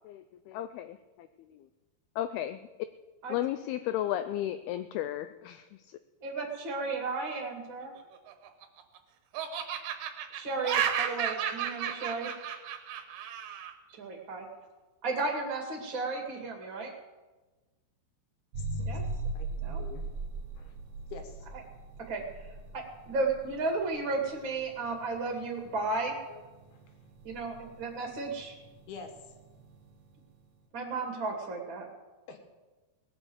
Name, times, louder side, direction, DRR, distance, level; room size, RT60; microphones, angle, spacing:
voice 1, 0.0-1.7 2.2-2.7 3.3-6.0, left 12 dB, 90° left, 11 dB, 2.2 m, -34 dB
voice 2, 6.2-7.9 10.3-12.3 13.9-14.5 15.0-16.9 18.8-19.0 19.6-19.8 22.1-22.2 22.7-26.1 27.2-28.5 30.7-31.9, right 3 dB, 35° right, 1 dB, 2.2 m, -34 dB
Laughter, 8.1-9.0 9.3-13.7, right 9 dB, 80° right, 3.4 m, -33 dB
sound 1, 18.5-30.2, right 2 dB, 60° right, 1.8 m, -40 dB
voice 3, 18.6-19.0 19.3-20.1 20.6-20.8 21.1-21.5 26.3-26.4 26.7-26.8 28.9-29.1 32.3-32.4, left 5 dB, 65° left, 4 dB, 3.4 m, -46 dB
19.0 x 8.1 x 7.9 m, 1.2 s
omnidirectional pair, 5.0 m